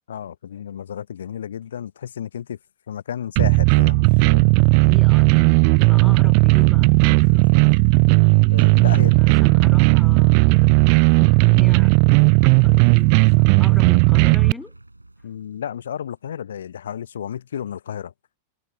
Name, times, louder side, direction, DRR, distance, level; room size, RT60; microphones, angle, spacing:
voice 1, 0.1-2.6 2.9-4.5 8.5-9.2 15.2-18.1, left 9 dB, 65° left, 0.9 m, -32 dB
sound 1, 3.4-14.5, right 40 dB or more, 45° right, 0.3 m, -15 dB
voice 2, 4.8-7.5 8.7-11.9 12.4-14.7, left 3 dB, 10° left, 1.8 m, -39 dB
sound 2, 5.2-16.0, right 2 dB, 85° right, 4.5 m, -42 dB
figure-of-eight pair, 90°, 0 cm